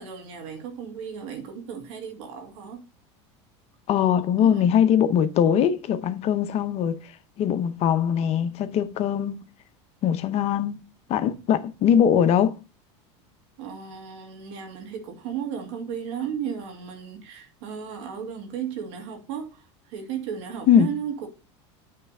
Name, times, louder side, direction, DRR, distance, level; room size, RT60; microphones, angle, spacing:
voice 1, 0.0-2.8 4.4-4.7 13.6-21.3, right 8 dB, 75° right, 2.3 m, -34 dB
voice 2, 3.9-7.0 7.4-9.4 10.0-10.8 11.1-12.6 20.7-20.9, left 9 dB, 45° left, 0.8 m, -21 dB
8.8 x 3.4 x 5.3 m
supercardioid pair, 125°, 15 cm